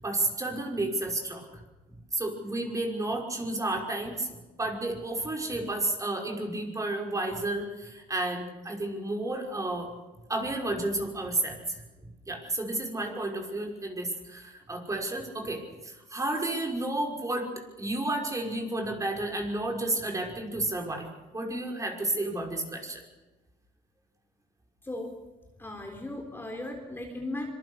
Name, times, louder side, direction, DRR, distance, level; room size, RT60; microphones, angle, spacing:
voice 1, 0.0-1.6 2.1-9.9 10.3-21.1 21.3-23.0, right 2 dB, 20° right, 2 dB, 5.7 m, -32 dB
voice 2, 24.8-25.1 25.6-27.5, left 1 dB, 10° left, 2 dB, 3.9 m, -37 dB
26.0 x 23.0 x 6.6 m, 1.1 s
cardioid pair, 110°, 17 cm